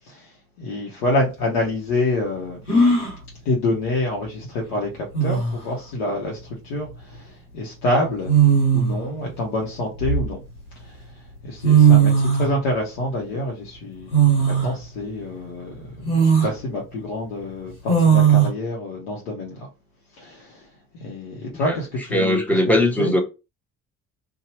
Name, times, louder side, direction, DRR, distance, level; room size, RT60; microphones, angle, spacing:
voice 1, 0.6-2.6 3.4-8.3 8.7-10.4 10.8-11.0 11.4-19.7 20.2-20.6 20.9-22.6 23.0-23.1, left 1 dB, 60° left, 0.9 m, -27 dB
sound 1, 1.1-1.2 2.7-3.2 4.7-4.8 5.1-5.6 7.0-7.2 8.3-9.0 9.7-10.7 11.4-11.5 11.6-12.5 14.1-14.7 15.2-15.3 16.0-16.5 17.9-18.5, right 6 dB, 90° left, 0.9 m, -17 dB
voice 2, 22.1-23.2, left 1 dB, 5° left, 0.7 m, -19 dB
2.8 x 2.2 x 2.9 m
figure-of-eight pair, 50°, 43 cm